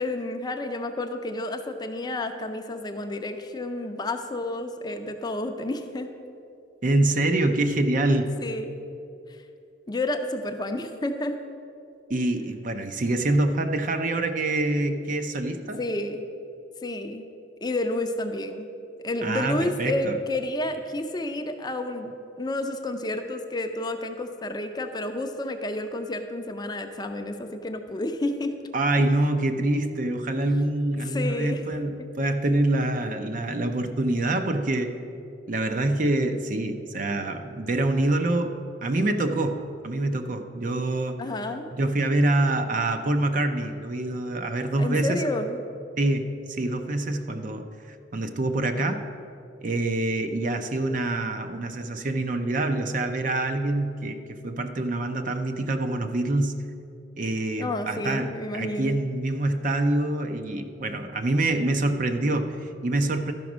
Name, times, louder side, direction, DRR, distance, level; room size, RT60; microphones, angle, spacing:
voice 1, 0.0-6.1 8.4-8.7 9.9-11.4 15.8-16.2 16.8-17.3 17.6-18.7 19.0-28.5 31.0-31.6 32.0-32.1 41.2-41.7 44.8-45.6 57.6-59.0, left 1 dB, 20° left, 6 dB, 0.5 m, -30 dB
voice 2, 6.8-8.3 12.1-15.8 19.2-20.2 28.7-34.9 35.5-38.6 38.8-41.2 41.7-45.2 46.0-49.0 49.6-56.6 57.2-63.3, right 2 dB, 45° right, 7 dB, 0.6 m, -26 dB
12.0 x 5.1 x 6.0 m, 2.6 s
head